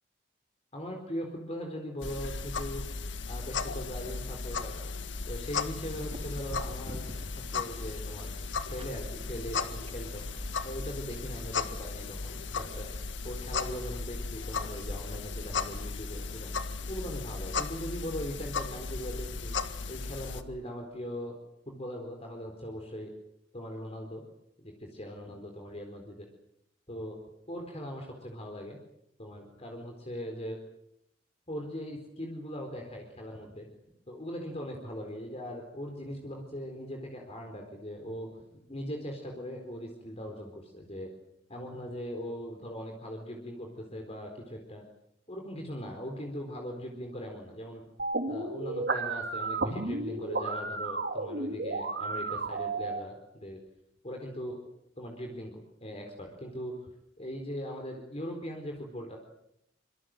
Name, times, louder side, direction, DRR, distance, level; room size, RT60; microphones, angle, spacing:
voice 1, 0.7-2.8 3.3-4.8 5.3-7.0 7.5-8.4 8.7-10.2 10.6-12.9 13.2-16.6 16.9-19.5 19.9-21.4 21.7-23.1 23.5-24.2 24.6-26.3 26.9-27.2 27.5-28.8 29.2-30.6 31.5-33.7 34.1-38.3 38.7-41.1 41.5-44.8 45.3-47.8 48.3-53.6 54.0-54.6 55.0-56.9 57.2-59.2, equal, 35° left, 2 dB, 4.2 m, -40 dB
sound 1, 2.0-20.4, left 4 dB, 80° left, 1.8 m, -36 dB
sound 2, 5.6-10.6, equal, 35° right, 5.6 m, -49 dB
sound 3, 48.0-53.0, right 3 dB, 60° right, 2.9 m, -33 dB
25.5 x 24.5 x 7.8 m, 0.79 s
head